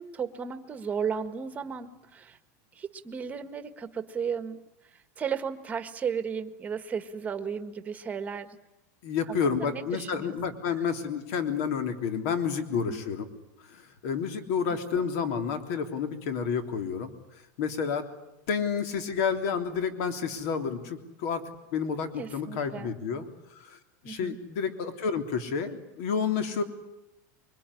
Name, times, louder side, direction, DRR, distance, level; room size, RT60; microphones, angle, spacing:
voice 1, 0.0-2.4 2.7-4.6 5.2-8.6 9.3-10.3 12.7-13.0 22.2-22.9 24.0-24.4, right 6 dB, 15° right, 9 dB, 1.6 m, -34 dB
voice 2, 9.0-13.3 13.7-17.1 17.6-18.0 18.5-21.4 21.7-23.3 23.5-23.8 24.0-26.6, left 6 dB, 55° left, 7 dB, 3.3 m, -30 dB
24.5 x 24.0 x 9.9 m, 0.91 s
supercardioid pair, 160°, 9 cm